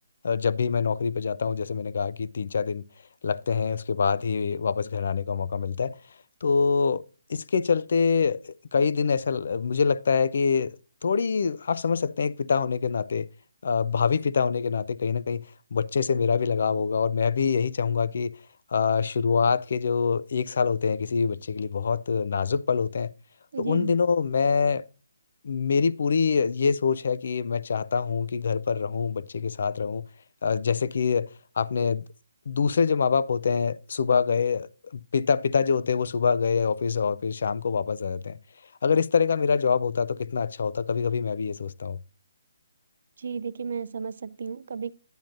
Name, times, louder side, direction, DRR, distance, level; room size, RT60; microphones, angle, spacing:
voice 1, 0.2-2.8 3.2-6.0 6.4-7.0 7.3-13.3 13.6-15.5 15.7-18.3 18.7-23.1 23.6-24.8 25.4-30.1 30.4-31.3 31.6-32.0 32.5-38.4 38.8-42.0, left 5 dB, 60° left, 0.4 m, -25 dB
voice 2, 23.5-24.0 43.2-44.9, right 5 dB, 60° right, 0.5 m, -33 dB
10.5 x 9.0 x 2.5 m
hypercardioid pair, 165°, 0 cm